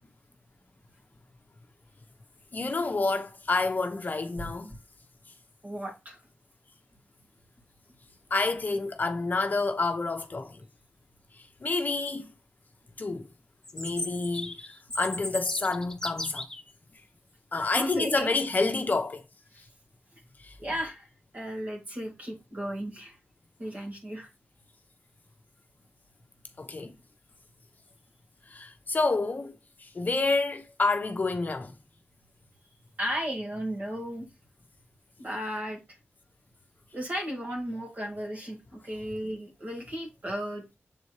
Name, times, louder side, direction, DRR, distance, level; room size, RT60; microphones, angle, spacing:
voice 1, 2.5-4.7 8.3-10.6 11.6-12.3 13.0-13.3 13.7-16.4 17.5-19.2 20.4-20.6 26.6-26.9 28.5-29.5 29.8-31.7, left 3 dB, 40° left, 0.8 m, -28 dB
voice 2, 5.6-6.2 17.5-18.3 19.5-19.7 20.6-21.1 21.3-23.2 23.6-24.3 33.0-34.3 35.2-36.0 36.9-40.6, equal, 35° right, 2.5 m, -35 dB
Chirp tweet, 13.6-16.6, left 2 dB, 15° left, 0.8 m, -36 dB
7.4 x 4.3 x 3.1 m
wide cardioid pair, 140°, 4 cm